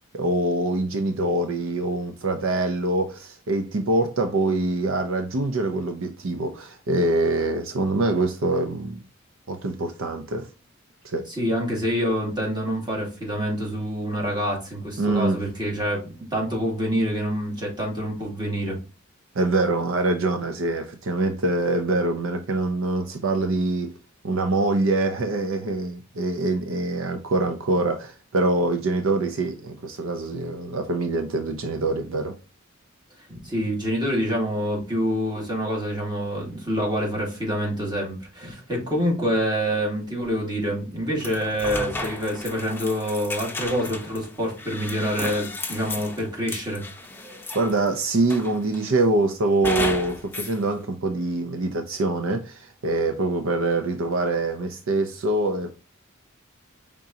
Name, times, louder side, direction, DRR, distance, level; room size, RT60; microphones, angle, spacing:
voice 1, 0.1-9.0 9.5-10.5 11.0-11.2 15.0-15.4 19.4-23.9 24.2-32.3 47.5-55.7, right 2 dB, 65° right, 0.6 m, -24 dB
voice 2, 11.3-18.8 33.3-46.8, equal, 20° right, 2.2 m, -26 dB
sound 1, 41.2-47.9 48.3-48.9 49.6-50.6, left 2 dB, 10° left, 0.7 m, -33 dB
4.9 x 3.7 x 2.7 m
head